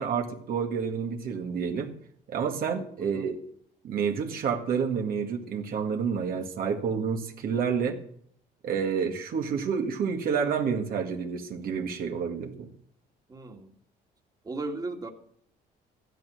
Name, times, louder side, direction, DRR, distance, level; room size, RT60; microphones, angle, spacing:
voice 1, 0.0-1.9 2.3-3.4 3.8-8.0 8.6-12.7, right 6 dB, 60° right, 1.9 m, -29 dB
voice 2, 13.3-13.7 14.5-15.1, right 2 dB, 20° right, 2.2 m, -36 dB
15.0 x 12.5 x 6.3 m
cardioid pair, 110°, 17 cm